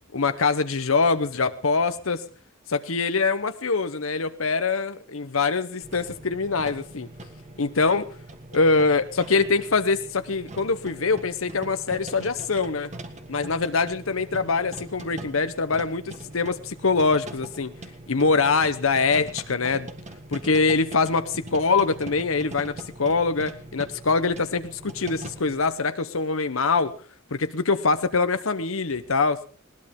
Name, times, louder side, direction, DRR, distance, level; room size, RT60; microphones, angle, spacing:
voice 1, 0.1-2.2 2.7-7.1 7.6-8.1 8.5-12.9 13.3-17.7 18.1-19.9 20.3-22.7 23.0-26.9 27.3-29.4, left 4 dB, 75° left, 10 dB, 1.0 m, -24 dB
sound 1, 5.8-25.6, right 1 dB, 35° right, 1.5 m, -42 dB
20.5 x 18.5 x 3.7 m, 0.39 s
head